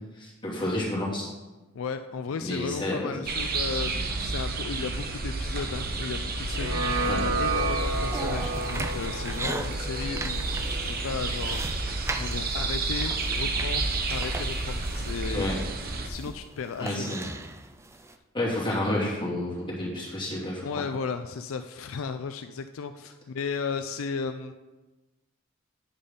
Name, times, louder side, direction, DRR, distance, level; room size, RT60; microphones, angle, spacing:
voice 1, 0.2-1.3 2.4-3.2 5.6-5.7 7.0-7.2 15.3-15.6 16.8-17.3 18.3-20.8, left 1 dB, 25° left, -6 dB, 2.5 m, -30 dB
voice 2, 1.7-15.5 16.0-17.3 20.6-24.5, left 5 dB, 75° left, 8 dB, 0.4 m, -35 dB
sound 1, 3.2-16.1, right 3 dB, 50° right, 1.0 m, -30 dB
sound 2, 6.5-11.6, right 3 dB, 80° right, 1.2 m, -32 dB
sound 3, 6.8-18.2, right 2 dB, 15° right, 0.4 m, -39 dB
8.8 x 5.2 x 5.5 m, 1.2 s
head